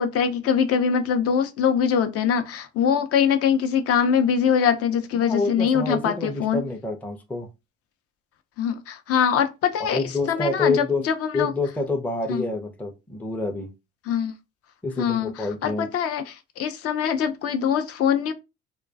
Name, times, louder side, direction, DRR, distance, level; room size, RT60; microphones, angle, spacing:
voice 1, 0.0-6.6 8.6-11.5 12.3-12.4 14.1-14.4 15.0-15.3 15.6-18.3, left 7 dB, 50° left, 0.6 m, -23 dB
voice 2, 5.2-7.5 9.8-11.0 11.3-13.7 14.8-15.9, left 3 dB, 5° left, 0.5 m, -27 dB
2.3 x 2.2 x 2.5 m
hypercardioid pair, 60°, 30 cm